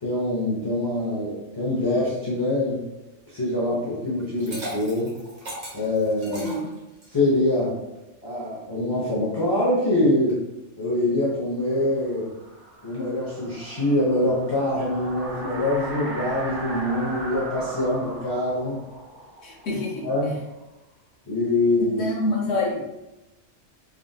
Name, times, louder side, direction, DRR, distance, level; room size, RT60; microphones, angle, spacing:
voice 1, 0.0-2.8 3.3-5.1 5.7-6.5 7.1-7.7 8.2-10.4 10.8-12.3 12.8-18.8 20.0-20.3 21.3-22.0, left 1 dB, 30° left, -7 dB, 0.5 m, -24 dB
Liquid, 4.2-7.3, right 1 dB, 40° right, 1.0 m, -37 dB
voice 2, 6.2-6.7 19.4-20.4 21.8-22.9, left 2 dB, 65° left, -3 dB, 1.1 m, -28 dB
sound 1, 11.9-20.6, right 2 dB, 85° right, 1.2 m, -37 dB
3.4 x 2.5 x 2.2 m, 0.97 s
omnidirectional pair, 1.3 m